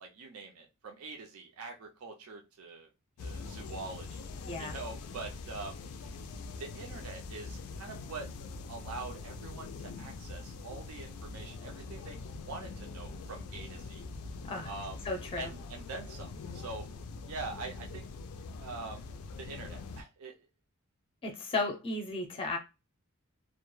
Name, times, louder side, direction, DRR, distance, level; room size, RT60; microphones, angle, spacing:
voice 1, 0.0-2.9 3.2-4.2 4.6-5.8 6.6-8.3 8.7-12.2 12.4-14.0 14.6-15.0 15.4-16.9 17.3-18.0 18.6-19.0 19.4-20.3, right 3 dB, 75° right, 0.5 m, -44 dB
sound 1, 3.2-20.0, left 3 dB, 85° left, 0.3 m, -43 dB
voice 2, 4.4-4.8 14.4-14.7 15.0-15.5 21.2-22.6, left 3 dB, 25° left, 0.5 m, -34 dB
2.2 x 2.0 x 3.0 m
head